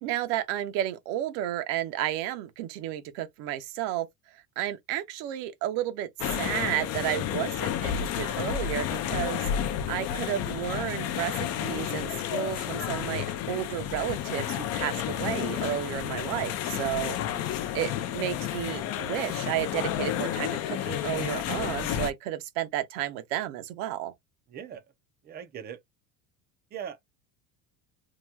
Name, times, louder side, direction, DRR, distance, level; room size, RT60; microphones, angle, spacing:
voice 1, 0.0-4.1 4.6-9.5 9.9-17.2 17.7-24.1, right 12 dB, 65° right, 0.9 m, -32 dB
sound 1, 6.2-22.1, left 10 dB, 35° left, 0.4 m, -31 dB
voice 2, 17.3-17.7 24.5-24.9 25.2-25.8 26.7-27.1, right 8 dB, 25° right, 0.4 m, -41 dB
2.9 x 2.2 x 3.3 m
cardioid pair, 150°, 45 cm